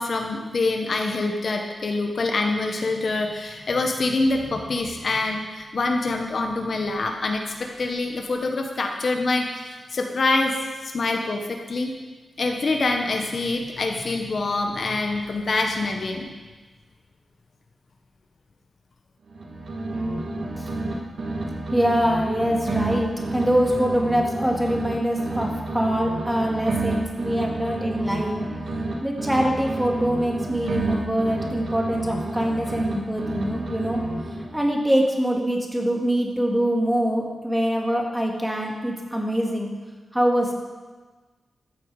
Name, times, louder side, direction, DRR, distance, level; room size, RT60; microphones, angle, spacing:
voice 1, 0.0-10.6 10.8-11.9 12.4-16.3, left 3 dB, 50° left, 3 dB, 1.1 m, -25 dB
sound 1, 19.3-20.9 21.2-24.9 25.2-28.9 29.2-32.9 33.2-34.6, right 2 dB, 60° right, 1.7 m, -29 dB
voice 2, 20.6-21.0 21.7-28.4 29.0-34.0 34.5-39.7 40.1-40.5, equal, 5° right, -1 dB, 1.9 m, -24 dB
14.0 x 8.7 x 4.8 m, 1.3 s
wide cardioid pair, 120°, 0 cm